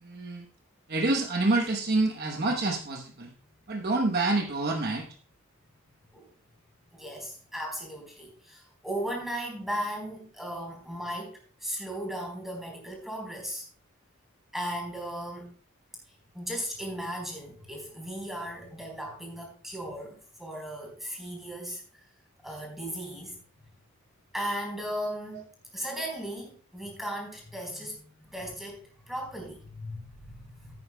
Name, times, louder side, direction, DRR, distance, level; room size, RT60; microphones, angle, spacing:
voice 1, 0.0-0.4 0.9-3.3 3.7-5.1, right 2 dB, 50° right, 3 dB, 1.0 m, -27 dB
voice 2, 6.9-13.7 14.5-15.5 16.1-22.0 22.4-23.4 24.3-25.4 25.7-30.7, equal, ahead, 0 dB, 4.0 m, -37 dB
15.0 x 9.4 x 2.2 m, 0.40 s
head